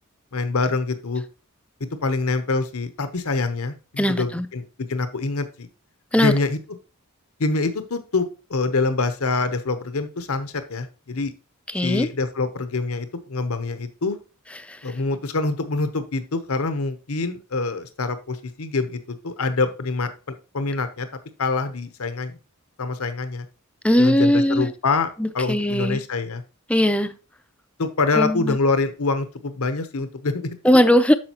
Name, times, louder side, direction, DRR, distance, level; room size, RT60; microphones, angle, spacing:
voice 1, 0.3-1.2 2.0-4.6 4.9-5.7 6.2-6.6 7.4-11.3 11.8-14.2 14.8-21.1 21.4-22.4 22.8-23.5 24.0-25.1 25.3-26.4 27.8-30.6, left 3 dB, 80° left, 0.9 m, -25 dB
voice 2, 4.0-4.5 6.1-6.3 11.7-12.1 14.6-14.9 23.8-24.7 25.2-26.0 26.7-27.1 28.1-28.6 30.6-31.1, equal, 5° left, 0.4 m, -19 dB
8.7 x 6.3 x 2.9 m
head